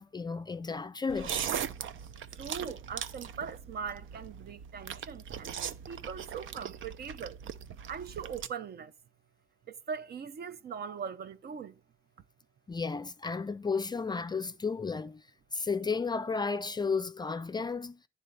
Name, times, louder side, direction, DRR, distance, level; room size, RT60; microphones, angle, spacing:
voice 1, 0.0-1.6 12.7-15.3 15.5-18.0, left 4 dB, 20° left, 0.4 m, -33 dB
sound 1, 1.1-8.5, right 8 dB, 85° right, 0.7 m, -39 dB
voice 2, 2.4-7.4 7.9-8.9 9.7-11.8, right 6 dB, 55° right, 0.6 m, -41 dB
11.0 x 4.0 x 5.4 m
wide cardioid pair, 175°, 20 cm